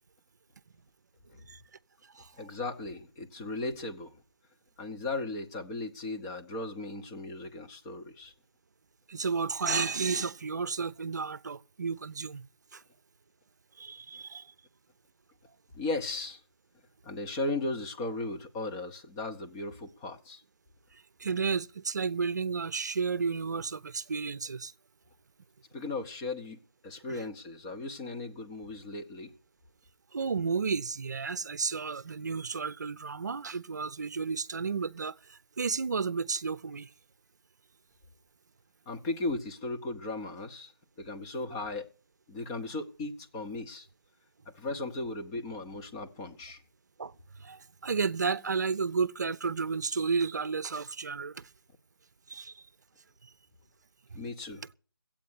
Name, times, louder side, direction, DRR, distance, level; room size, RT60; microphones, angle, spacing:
voice 1, 2.4-4.2 4.8-8.3 15.7-16.4 17.0-20.4 25.7-29.3 38.9-40.7 41.0-41.9 42.3-43.9 44.5-46.6 54.1-54.6, left 2 dB, 10° left, 0.9 m, -36 dB
voice 2, 9.1-12.5 12.7-12.8 13.8-14.5 20.9-24.7 27.1-27.2 30.1-36.9 47.0-51.5 52.3-52.6 54.1-54.2, right 5 dB, 50° right, 0.8 m, -32 dB
15.5 x 8.7 x 9.5 m
figure-of-eight pair, 165°, 12 cm